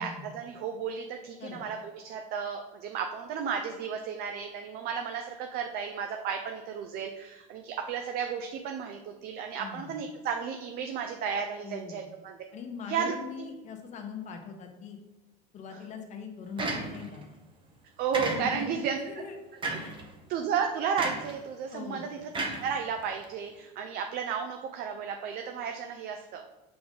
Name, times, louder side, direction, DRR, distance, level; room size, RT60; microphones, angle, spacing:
voice 1, 0.0-12.4 12.9-13.5 18.0-19.0 20.3-26.4, right 7 dB, 50° right, 4 dB, 0.6 m, -33 dB
voice 2, 9.6-9.9 11.6-12.0 12.5-15.0 15.5-17.2 18.3-19.4 19.7-20.0 21.7-22.1, left 6 dB, 35° left, 3 dB, 1.1 m, -41 dB
sound 1, 16.6-17.2 18.1-18.8 19.6-20.0 21.0-21.4 22.3-23.2, right 2 dB, 25° right, 1.0 m, -33 dB
6.8 x 3.8 x 3.7 m, 1.1 s
supercardioid pair, 130°, 21 cm